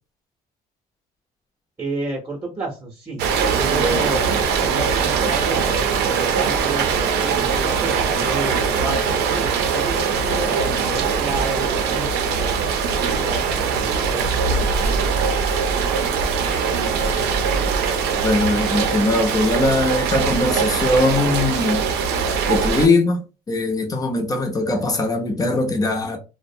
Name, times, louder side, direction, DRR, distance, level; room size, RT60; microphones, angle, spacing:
voice 1, 1.8-15.1, right 2 dB, 20° right, 0.7 m, -31 dB
Rain, 3.2-22.9, right 6 dB, 80° right, 0.5 m, -21 dB
voice 2, 18.2-21.9 22.5-26.2, left 2 dB, 20° left, 0.6 m, -21 dB
2.5 x 2.0 x 2.6 m
cardioid pair, 110°, 17 cm